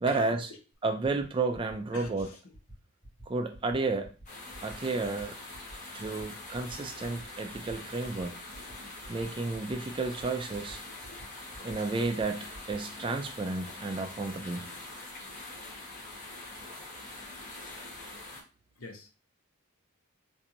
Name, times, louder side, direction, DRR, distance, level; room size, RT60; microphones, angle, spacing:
voice 1, 0.0-0.4 0.8-2.3 3.3-4.1 4.6-5.4 5.9-8.4 9.1-10.8 11.6-14.7, right 3 dB, 20° right, 0.3 m, -32 dB
sound 1, 0.7-0.8 1.0-1.3 1.5-1.7 2.0-2.2 2.5-2.7 3.0-3.2 3.5-3.8 4.0-4.3 4.5-4.7 5.0-5.2 5.5-5.7 6.0-6.2 6.5-6.8 7.0-7.2 7.5-7.8 8.0-8.2 8.5-8.7 9.0-9.3 9.5-9.7 10.0-10.2 10.5-10.7 11.0-11.2 11.5-11.7 12.0-12.2 12.5-12.8, right 1 dB, ahead, 1.9 m, -50 dB
voice 2, 1.9-2.4 18.8-19.1, left 2 dB, 70° left, 0.8 m, -44 dB
sound 2, 4.3-18.4, left 2 dB, 35° left, 1.1 m, -44 dB
4.3 x 2.6 x 2.6 m
head